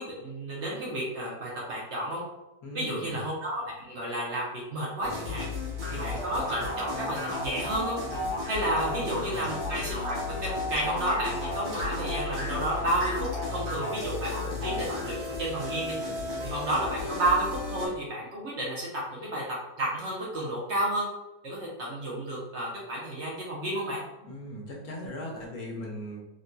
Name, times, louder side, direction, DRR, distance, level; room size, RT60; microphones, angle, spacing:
voice 1, 0.0-2.2 2.7-5.5 5.9-8.0 8.5-10.2 10.4-16.0 16.4-19.4 19.8-21.1 21.4-24.0, right 1 dB, 55° right, -4 dB, 0.9 m, -31 dB
voice 2, 2.6-3.2 8.8-9.6 24.2-26.3, equal, 70° left, -2 dB, 1.2 m, -39 dB
sound 1, 5.0-17.9, left 3 dB, 75° right, 1.5 m, -36 dB
sound 2, 5.8-15.1, equal, 90° right, 1.7 m, -36 dB
3.7 x 2.7 x 2.2 m, 0.98 s
omnidirectional pair, 1.6 m